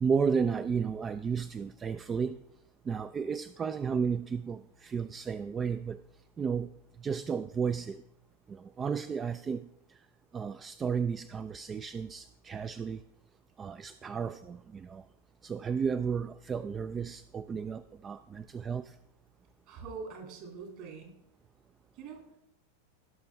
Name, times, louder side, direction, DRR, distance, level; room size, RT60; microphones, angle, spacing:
voice 1, 0.0-2.4 2.9-6.0 6.4-6.7 7.0-8.0 8.5-9.7 10.3-13.0 13.6-15.0 15.4-19.0, right 6 dB, 20° right, 13 dB, 0.3 m, -33 dB
voice 2, 19.7-21.1 21.9-22.2, right 5 dB, 45° right, 1 dB, 2.6 m, -43 dB
17.5 x 6.0 x 3.4 m, 0.81 s
figure-of-eight pair, 90°, 0 cm